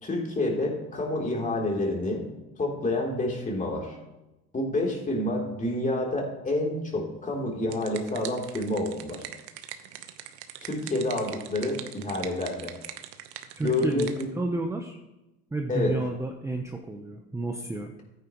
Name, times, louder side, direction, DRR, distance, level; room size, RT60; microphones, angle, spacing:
voice 1, 0.0-2.2 2.6-3.9 4.5-9.2 10.6-12.7 13.6-14.2 15.7-16.0, left 2 dB, 25° left, -1 dB, 3.3 m, -28 dB
sound 1, 7.4-14.3, right 11 dB, 75° right, 1.0 m, -42 dB
voice 2, 13.6-15.0 15.5-17.9, right 2 dB, 10° right, 3 dB, 0.8 m, -31 dB
14.0 x 9.2 x 3.0 m, 0.97 s
supercardioid pair, 105°, 33 cm